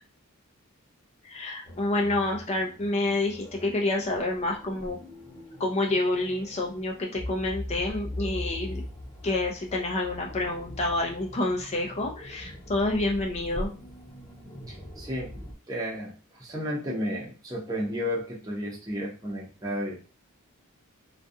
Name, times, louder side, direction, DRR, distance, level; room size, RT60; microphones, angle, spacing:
voice 1, 1.2-5.0 5.6-8.8 9.2-13.7, left 2 dB, 30° left, 0 dB, 0.4 m, -28 dB
sound 1, 1.6-15.5, left 1 dB, 15° left, 1.1 m, -41 dB
voice 2, 14.7-20.0, equal, 15° right, -4 dB, 0.7 m, -33 dB
2.4 x 2.3 x 2.6 m, 0.35 s
head